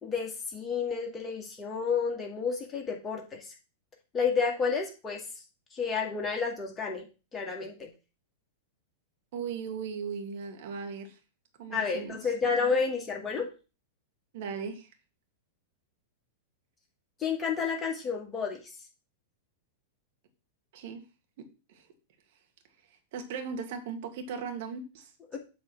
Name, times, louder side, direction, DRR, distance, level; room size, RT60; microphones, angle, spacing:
voice 1, 0.0-3.4 4.1-5.2 5.7-7.0 7.3-7.9 11.7-13.5 17.2-18.6 25.3-25.4, left 5 dB, 20° left, 1 dB, 2.0 m, -30 dB
voice 2, 9.3-11.2 11.6-12.3 14.3-14.9 20.7-21.0 21.4-21.9 23.1-25.1, right 6 dB, 60° right, 5 dB, 1.8 m, -38 dB
7.7 x 3.5 x 6.0 m, 0.32 s
hypercardioid pair, 100°, 0 cm